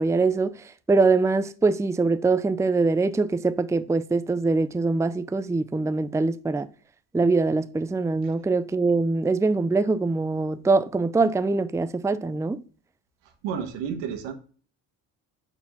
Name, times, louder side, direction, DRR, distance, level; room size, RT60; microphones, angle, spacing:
voice 1, 0.0-6.7 7.1-12.6, right 3 dB, 5° right, 0.5 m, -23 dB
voice 2, 13.4-14.3, right 7 dB, 85° right, 1.5 m, -30 dB
5.9 x 4.5 x 5.7 m
supercardioid pair, 70°, 42 cm